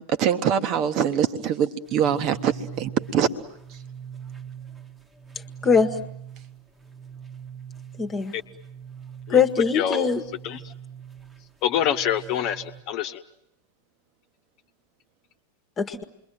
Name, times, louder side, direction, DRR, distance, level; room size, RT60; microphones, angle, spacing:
voice 1, 0.0-3.3, right 8 dB, 40° right, 12 dB, 1.4 m, -23 dB
sound 1, 1.8-12.8, right 8 dB, 15° right, 1.5 m, -42 dB
voice 2, 5.6-5.9 8.0-8.3 9.3-10.2 15.8-16.0, left 6 dB, 20° left, 6 dB, 1.5 m, -21 dB
voice 3, 9.7-10.1 10.4-10.6 11.6-13.2, left 9 dB, 40° left, 6 dB, 1.2 m, -25 dB
28.5 x 22.5 x 9.2 m, 0.77 s
figure-of-eight pair, 90°, 0 cm